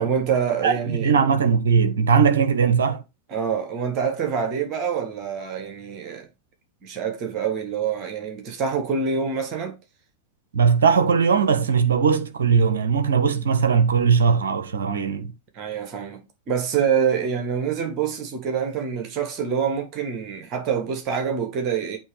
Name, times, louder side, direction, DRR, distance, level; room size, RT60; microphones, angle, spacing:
voice 1, 0.0-1.1 3.3-6.3 6.8-9.7 15.5-22.0, right 7 dB, 35° right, 1.7 m, -26 dB
voice 2, 0.6-3.0 10.5-15.3, right 6 dB, 65° right, 0.8 m, -19 dB
8.2 x 3.0 x 5.0 m
figure-of-eight pair, 90°, 0 cm